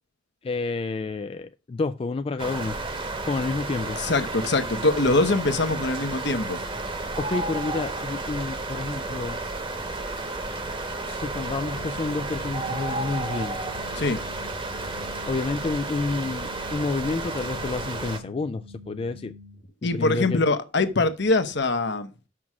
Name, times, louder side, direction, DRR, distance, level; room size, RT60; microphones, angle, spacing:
voice 1, 0.4-2.8 3.3-4.0 7.2-9.4 11.0-13.6 15.3-19.3 19.8-20.4, left 3 dB, 30° left, 0.3 m, -29 dB
sound 1, 2.4-18.2, right 2 dB, 25° right, 1.1 m, -32 dB
voice 2, 3.9-6.6 13.9-14.2 19.8-22.1, left 2 dB, 65° left, 1.0 m, -23 dB
sound 2, 11.3-19.6, left 2 dB, 70° right, 1.6 m, -46 dB
6.1 x 6.1 x 6.0 m
head